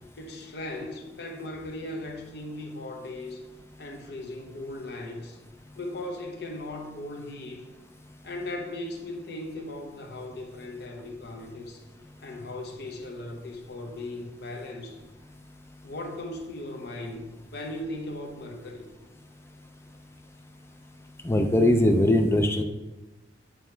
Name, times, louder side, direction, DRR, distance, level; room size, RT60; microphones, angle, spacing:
voice 1, 0.2-3.4 3.8-5.4 5.8-7.7 8.2-11.8 12.2-15.0 15.8-18.9, left 1 dB, 60° left, 3 dB, 0.9 m, -38 dB
voice 2, 21.2-22.6, left 1 dB, 15° left, 5 dB, 0.4 m, -21 dB
9.0 x 3.5 x 4.5 m, 1.1 s
head